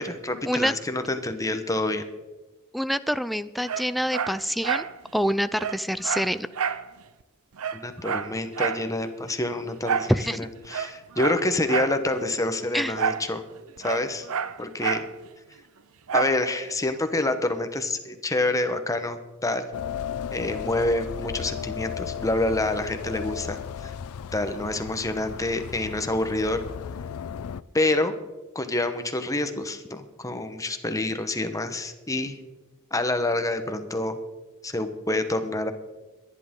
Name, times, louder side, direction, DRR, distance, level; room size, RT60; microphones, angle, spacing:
voice 1, 0.0-2.0 7.7-10.2 10.7-13.4 13.8-14.3 14.6-15.0 16.1-19.7 20.3-23.9 24.3-26.6 27.7-28.1 28.5-32.4 32.9-34.2 34.6-35.7, left 2 dB, 15° left, 8 dB, 1.0 m, -27 dB
voice 2, 2.7-4.9 5.1-6.5 10.1-10.5 12.7-13.0, equal, ahead, 13 dB, 0.4 m, -26 dB
Dog, 3.6-4.9 5.2-5.3 5.6-6.9 7.2-7.3 7.6-8.9 9.8-10.2 10.6-12.0 13.0-13.3 13.6-15.1 16.1-16.4 16.9-17.0, right 7 dB, 80° right, 0.6 m, -28 dB
sound 1, 19.7-27.6, left 8 dB, 90° left, 0.4 m, -35 dB
23.0 x 10.5 x 3.7 m, 1.1 s
head